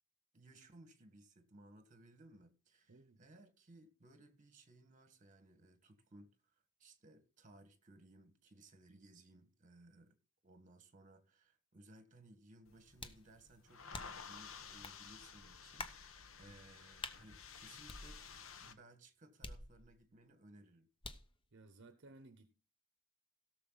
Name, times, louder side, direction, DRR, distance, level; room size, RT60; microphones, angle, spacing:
voice 1, 0.3-10.2 10.4-18.2 18.6-20.9, right 2 dB, 35° right, 1.6 m, -62 dB
voice 2, 2.9-3.2 16.4-16.6 21.5-22.5, right 2 dB, 60° right, 0.8 m, -59 dB
sound 1, 12.7-18.7, left 6 dB, 70° left, 1.1 m, -53 dB
sound 2, 13.0-13.3 13.9-14.3 14.8-15.0 15.8-16.1 17.0-17.2 17.9-18.5 19.4-20.1 21.0-21.4, left 3 dB, 25° left, 0.8 m, -48 dB
17.0 x 6.7 x 3.9 m
head